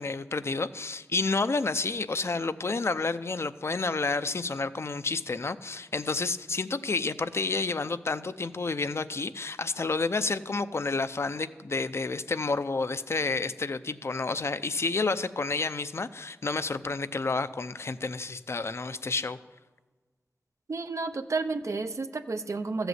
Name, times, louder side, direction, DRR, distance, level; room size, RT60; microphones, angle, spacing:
voice 1, 0.0-19.4, left 3 dB, 55° left, 12 dB, 0.6 m, -30 dB
voice 2, 20.7-22.9, right 3 dB, 65° right, 8 dB, 0.8 m, -31 dB
14.0 x 8.0 x 8.0 m, 1.3 s
wide cardioid pair, 75°, 5 cm